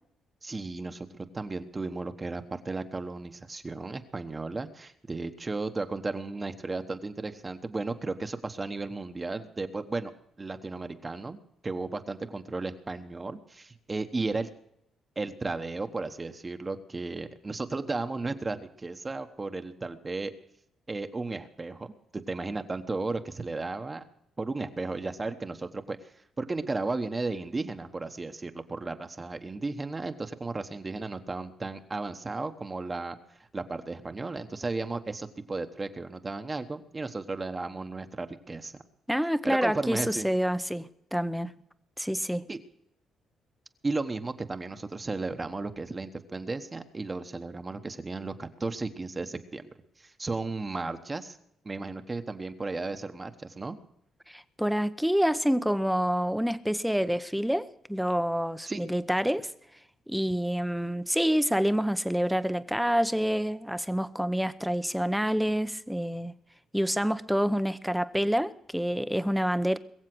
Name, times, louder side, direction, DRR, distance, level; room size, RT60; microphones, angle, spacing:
voice 1, 0.4-1.1 1.3-10.1 10.4-14.5 15.2-20.3 20.9-21.9 22.3-24.0 24.4-26.0 26.4-33.2 33.5-38.7 39.4-40.3 42.5-42.6 43.8-49.6 50.0-51.4 51.6-53.8 58.7-58.8, right 3 dB, 25° right, 1.2 m, -34 dB
voice 2, 39.1-41.5 42.0-42.4 54.3-59.5 60.1-66.3 66.7-69.8, equal, ahead, 0.8 m, -27 dB
21.5 x 7.5 x 6.1 m
cardioid pair, 90°, 0 cm